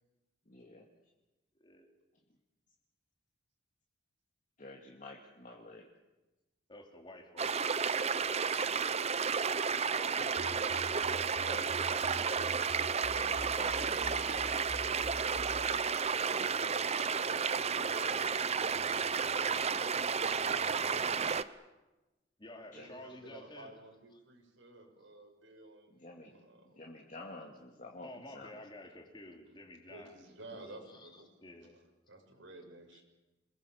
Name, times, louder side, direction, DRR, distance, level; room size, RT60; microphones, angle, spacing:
voice 1, 0.5-0.8 4.6-5.9 8.5-9.1 11.4-11.7 13.1-14.4 16.2-17.0 22.7-22.9 25.9-26.4 26.8-28.5 30.5-30.8, left 2 dB, 40° left, -1 dB, 2.4 m, -50 dB
voice 2, 6.7-7.5 8.3-8.4 8.9-9.1 9.5-10.3 11.3-12.5 17.9-18.3 22.4-23.7 24.1-24.2 28.0-30.2 30.6-31.8 32.9-33.0, left 1 dB, 25° left, 3 dB, 3.3 m, -52 dB
sound 1, 7.4-21.4, right 6 dB, 35° right, 0.7 m, -32 dB
voice 3, 9.8-10.6 13.9-15.9 17.3-18.7 22.7-25.9 26.2-26.8 29.9-31.3 32.1-33.0, right 2 dB, 75° right, 2 dB, 6.2 m, -53 dB
sound 2, 10.4-15.7, equal, 85° left, 3.6 m, -46 dB
27.5 x 21.0 x 7.4 m, 1.1 s
head